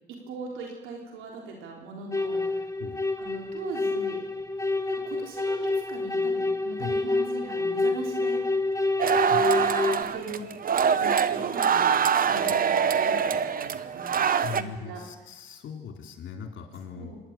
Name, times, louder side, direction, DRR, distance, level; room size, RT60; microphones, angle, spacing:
voice 1, 0.1-2.7 3.2-4.2 4.9-8.5 9.2-10.5 11.0-14.2 14.5-15.1 17.0-17.2, right 3 dB, 90° right, 0 dB, 3.6 m, -40 dB
sound 1, 2.1-10.0, left 2 dB, 15° left, 1.4 m, -28 dB
sound 2, 9.0-14.6, right 7 dB, 45° right, 1.0 m, -24 dB
voice 2, 14.4-17.1, left 6 dB, 70° left, 3 dB, 3.6 m, -39 dB
26.0 x 11.5 x 8.8 m, 1.3 s
cardioid pair, 90°, 20 cm